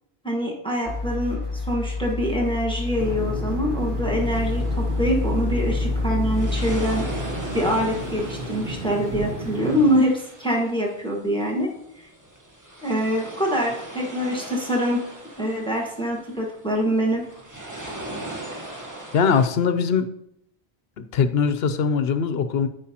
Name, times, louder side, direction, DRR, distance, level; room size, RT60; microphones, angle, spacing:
voice 1, 0.2-7.0 7.5-11.7 12.8-15.0 15.4-17.2, equal, 5° left, -2 dB, 1.4 m, -24 dB
sound 1, 0.9-9.1 9.5-9.6, left 3 dB, 25° left, 1.2 m, -28 dB
sound 2, 3.0-10.0, right 2 dB, 50° right, 1.1 m, -33 dB
sound 3, 4.2-19.5, right 1 dB, 15° right, 1.2 m, -40 dB
voice 2, 19.1-20.1 21.0-22.7, left 6 dB, 70° left, 10 dB, 0.9 m, -21 dB
12.5 x 5.4 x 2.8 m, 0.78 s
omnidirectional pair, 1.1 m